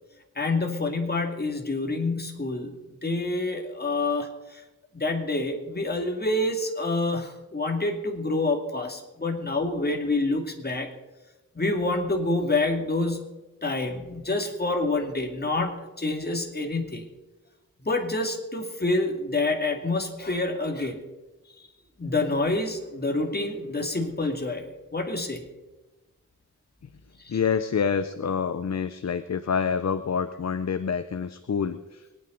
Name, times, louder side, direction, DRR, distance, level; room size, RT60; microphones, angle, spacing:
voice 1, 0.4-2.7 3.0-4.6 4.9-10.9 11.5-13.3 13.6-17.0 17.8-21.0 22.0-24.7 24.9-25.4 27.2-27.4, left 2 dB, 30° left, 2 dB, 2.4 m, -27 dB
voice 2, 27.3-32.1, left 6 dB, 50° left, 10 dB, 0.7 m, -27 dB
24.0 x 9.5 x 3.9 m, 1.1 s
wide cardioid pair, 70°, 34 cm